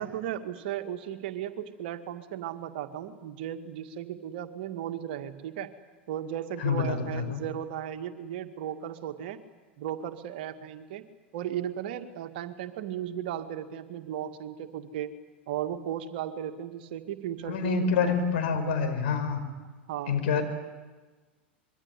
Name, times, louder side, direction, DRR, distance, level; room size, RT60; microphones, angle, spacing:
voice 1, 0.0-5.7 6.1-9.4 9.8-11.1 11.3-15.2 15.5-18.2 19.9-20.2, right 10 dB, 55° right, 9 dB, 2.1 m, -35 dB
voice 2, 6.6-7.4 17.5-19.4 20.1-20.4, left 5 dB, 60° left, 6 dB, 5.5 m, -27 dB
26.5 x 23.0 x 9.8 m, 1.3 s
figure-of-eight pair, 90°, 6 cm